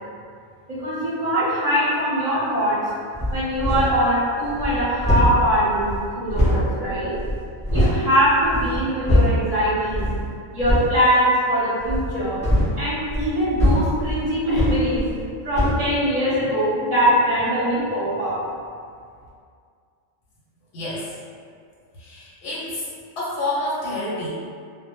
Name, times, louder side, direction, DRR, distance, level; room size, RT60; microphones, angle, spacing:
voice 1, 0.7-2.8 3.3-7.1 7.7-10.0 10.5-12.4 12.8-15.0 15.4-18.3, equal, 35° right, -11 dB, 0.8 m, -22 dB
sound 1, 3.1-4.1 4.4-8.0 8.4-9.5 9.9-10.2 10.6-11.0 11.8-15.3 15.5-15.9, equal, 5° left, 0.8 m, -22 dB
voice 2, 20.7-21.1 22.0-22.9 23.2-24.3, left 2 dB, 65° left, -7 dB, 0.8 m, -28 dB
2.0 x 2.0 x 2.9 m, 2.2 s
omnidirectional pair, 1.3 m